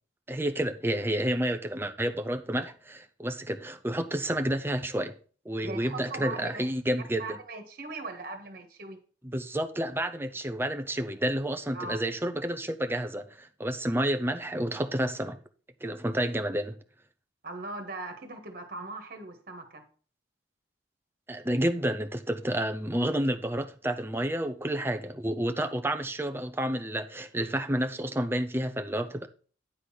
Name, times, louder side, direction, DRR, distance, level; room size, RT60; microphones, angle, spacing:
voice 1, 0.3-5.1 5.4-7.2 9.2-15.4 15.8-16.8 21.3-29.3, right 1 dB, 10° right, 0.7 m, -30 dB
voice 2, 5.6-6.7 7.2-9.0 11.7-12.0 17.4-19.9, right 3 dB, 55° right, 1.7 m, -39 dB
9.8 x 4.0 x 6.5 m
head